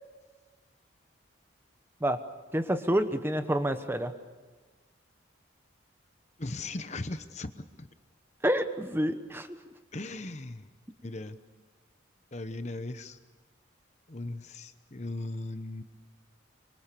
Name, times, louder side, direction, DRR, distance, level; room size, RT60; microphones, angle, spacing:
voice 1, 2.5-4.1 8.4-9.5, right 1 dB, 10° right, 9 dB, 1.1 m, -28 dB
voice 2, 6.4-7.9 9.9-10.7 11.0-11.4 12.3-13.2 14.1-15.8, left 2 dB, 35° left, 10 dB, 1.0 m, -38 dB
25.5 x 24.0 x 6.8 m, 1.4 s
head